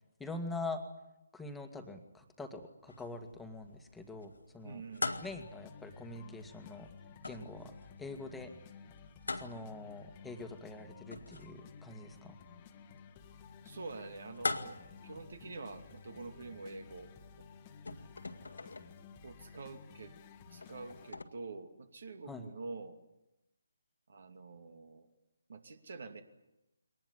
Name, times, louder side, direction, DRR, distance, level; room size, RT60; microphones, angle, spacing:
voice 1, 0.2-0.8 1.3-4.8 5.2-6.9 7.2-7.7 8.0-8.5 9.3-12.4 22.3-22.4, left 2 dB, 5° left, 5 dB, 2.0 m, -44 dB
sound 1, 2.9-21.2, left 3 dB, 70° left, 2.0 m, -46 dB
voice 2, 4.6-5.2 13.6-17.1 19.2-20.1 20.5-23.0 24.1-25.1 25.5-26.2, right 3 dB, 55° right, 7 dB, 2.5 m, -46 dB
sound 2, 5.1-21.1, left 6 dB, 25° left, 1.6 m, -55 dB
23.0 x 19.5 x 9.7 m, 0.92 s
figure-of-eight pair, 145°, 0 cm